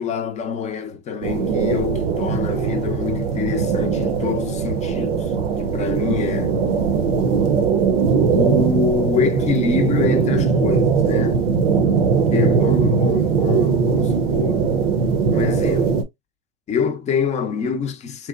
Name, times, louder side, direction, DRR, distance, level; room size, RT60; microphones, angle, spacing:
voice 1, 0.0-5.3 5.6-6.6 8.3-11.4 12.3-14.7 15.3-16.0 16.7-18.3, left 6 dB, 25° left, 0.5 m, -25 dB
sound 1, 1.2-16.0, right 5 dB, 80° right, 0.7 m, -20 dB
2.9 x 2.1 x 2.3 m
hypercardioid pair, 110°, 31 cm